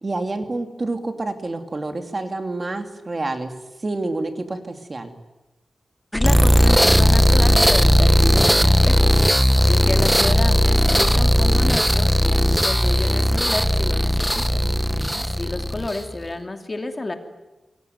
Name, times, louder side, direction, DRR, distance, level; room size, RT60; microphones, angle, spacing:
voice 1, 0.0-3.5 3.8-5.1 14.6-15.2, right 2 dB, 35° right, 6 dB, 2.7 m, -28 dB
voice 2, 6.1-9.2 9.6-14.7 15.2-17.1, left 2 dB, 30° left, 6 dB, 2.7 m, -30 dB
sound 1, 6.1-16.1, equal, ahead, 1.1 m, -17 dB
27.5 x 22.0 x 9.4 m, 1.1 s
wide cardioid pair, 115°, 0 cm